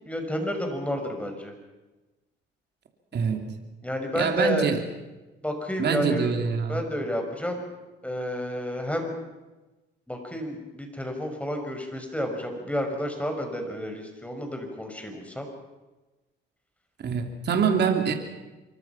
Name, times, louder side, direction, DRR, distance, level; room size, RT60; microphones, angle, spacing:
voice 1, 0.0-1.5 3.8-4.7 5.4-6.3 6.7-7.6 8.0-9.1 10.1-15.5, left 1 dB, 5° left, 4 dB, 5.7 m, -30 dB
voice 2, 3.1-3.5 4.1-4.8 5.8-6.9 17.0-18.1, right 6 dB, 55° right, 4 dB, 3.2 m, -25 dB
26.0 x 23.0 x 5.9 m, 1.1 s
cardioid pair, 90°, 20 cm